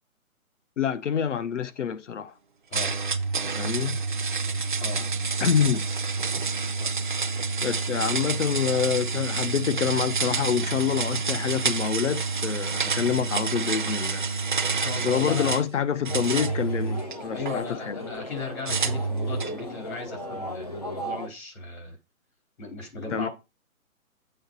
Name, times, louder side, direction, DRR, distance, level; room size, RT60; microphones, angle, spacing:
voice 1, 0.8-2.3 3.5-4.0 5.0-5.1 5.4-5.9 7.6-14.3 15.0-18.0 23.1-23.3, left 8 dB, 55° left, 0.8 m, -27 dB
sound 1, 2.7-15.7 16.0-17.5 18.6-19.6, right 4 dB, 35° right, 0.5 m, -28 dB
voice 2, 14.7-15.6 17.3-22.0 22.6-23.3, left 4 dB, 70° left, 3.9 m, -36 dB
sound 2, 16.1-21.3, equal, 30° left, 0.5 m, -37 dB
7.8 x 4.6 x 5.3 m
hypercardioid pair, 160°, 43 cm